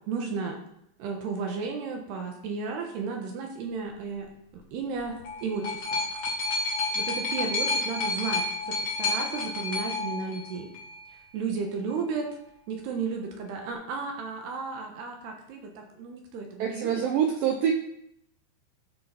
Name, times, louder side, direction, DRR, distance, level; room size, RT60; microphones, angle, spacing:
voice 1, 0.1-0.6 1.0-4.3 4.5-6.0 6.9-10.7 11.3-12.3 12.7-16.9, right 5 dB, 70° right, 2 dB, 3.1 m, -33 dB
sound 1, 5.0-11.0 11.9-12.0, left 3 dB, 35° left, 1.8 m, -30 dB
voice 2, 16.6-17.7, right 9 dB, 90° right, 3 dB, 2.0 m, -25 dB
14.5 x 5.4 x 5.9 m, 0.76 s
omnidirectional pair, 5.2 m